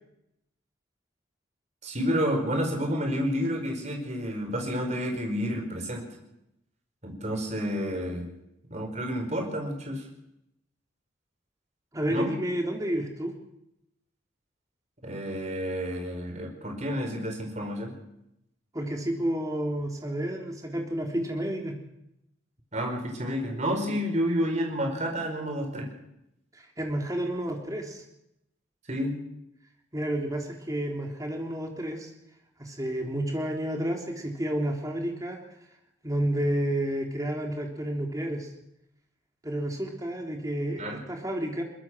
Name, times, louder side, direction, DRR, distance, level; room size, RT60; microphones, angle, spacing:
voice 1, 1.8-6.0 7.0-8.3 8.7-10.0 12.1-12.3 15.0-17.9 22.7-25.9 28.9-29.2 40.8-41.0, equal, 35° right, 3 dB, 4.8 m, -30 dB
voice 2, 11.9-13.3 18.7-21.8 26.5-28.0 29.9-32.1 32.6-35.4 36.0-38.5 39.4-41.6, right 1 dB, 20° right, 2 dB, 3.4 m, -30 dB
22.5 x 21.0 x 6.3 m, 0.85 s
head